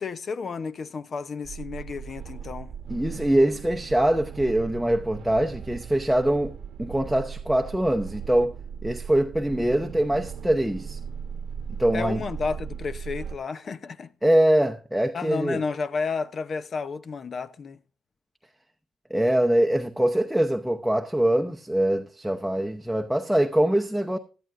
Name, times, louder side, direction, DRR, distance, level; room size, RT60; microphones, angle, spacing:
voice 1, 0.0-2.7 11.9-14.1 15.1-17.8, left 5 dB, 45° left, 0.8 m, -32 dB
sound 1, 1.4-13.4, right 7 dB, 65° right, 1.0 m, -38 dB
voice 2, 2.9-8.6 8.8-11.0 11.8-12.2 14.2-15.6 19.1-24.2, right 1 dB, ahead, 0.8 m, -23 dB
17.0 x 12.5 x 2.5 m
cardioid pair, 90°, 0 cm